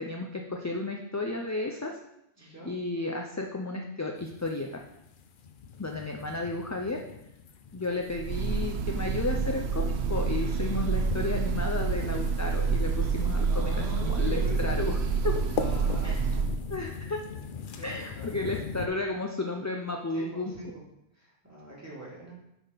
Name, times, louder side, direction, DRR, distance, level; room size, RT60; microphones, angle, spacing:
voice 1, 0.0-2.0 2.4-4.8 5.8-7.0 7.7-13.8 14.0-15.0 15.2-15.4 16.0-16.2 16.7-17.2 17.8-20.5, left 2 dB, 20° left, 1 dB, 0.5 m, -33 dB
voice 2, 2.4-2.7 13.5-14.7 15.6-16.3 17.7-18.5 20.1-20.7 21.1-22.3, right 1 dB, 15° right, -6 dB, 2.6 m, -43 dB
sound 1, 4.2-18.9, left 5 dB, 55° left, 0.8 m, -41 dB
Breathing / Bird, 8.1-16.6, right 5 dB, 80° right, 0.9 m, -28 dB
8.5 x 4.2 x 5.7 m, 0.83 s
omnidirectional pair, 1.1 m